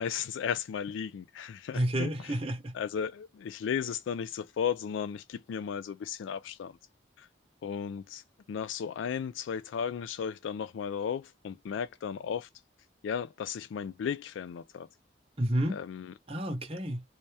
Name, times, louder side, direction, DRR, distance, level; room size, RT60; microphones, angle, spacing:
voice 1, 0.0-2.4 2.7-6.8 7.2-7.3 7.6-12.5 13.0-14.9 15.7-16.1, left 7 dB, 85° left, 0.3 m, -35 dB
voice 2, 1.7-2.7 15.4-15.8 16.3-17.0, right 1 dB, 30° right, 1.0 m, -30 dB
3.3 x 2.7 x 3.3 m
head